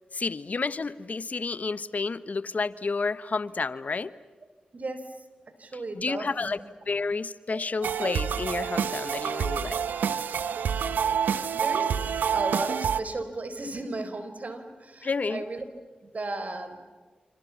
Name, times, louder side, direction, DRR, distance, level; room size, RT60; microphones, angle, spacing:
voice 1, 0.1-4.1 5.7-6.6 6.9-9.8 15.0-15.4, left 4 dB, 55° left, 15 dB, 1.1 m, -30 dB
voice 2, 4.7-5.1 5.6-6.5 7.5-7.6 11.5-15.6 16.0-16.9, right 2 dB, 55° right, 9 dB, 4.4 m, -35 dB
sound 1, 7.8-13.0, right 7 dB, 90° right, 0.9 m, -27 dB
29.5 x 27.5 x 7.2 m, 1.4 s
cardioid pair, 40°, 3 cm